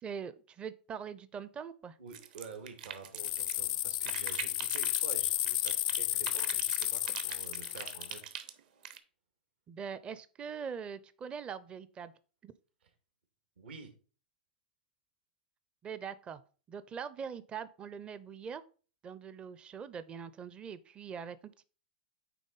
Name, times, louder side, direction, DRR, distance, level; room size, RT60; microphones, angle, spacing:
voice 1, 0.0-2.0 9.7-12.1 12.4-12.5 15.8-16.4 16.7-18.6 19.0-21.7, right 7 dB, 20° right, 15 dB, 0.5 m, -42 dB
voice 2, 2.0-8.3 13.6-13.9, right 5 dB, 75° right, 5 dB, 2.1 m, -49 dB
sound 1, 2.1-3.7 4.0-6.0 6.2-9.0, right 10 dB, 55° right, 1.0 m, -43 dB
sound 2, 3.2-8.2, left 16 dB, 55° left, 0.3 m, -33 dB
9.1 x 3.5 x 4.0 m, 0.38 s
hypercardioid pair, 130°, 6 cm